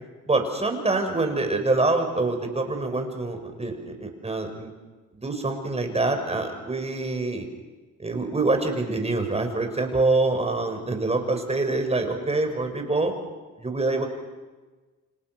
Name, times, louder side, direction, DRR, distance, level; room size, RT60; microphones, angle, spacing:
voice 1, 0.3-4.7 5.2-7.5 8.0-13.1 13.6-14.1, right 2 dB, 20° right, 5 dB, 5.9 m, -25 dB
29.5 x 26.5 x 6.2 m, 1.3 s
cardioid pair, 90°, 30 cm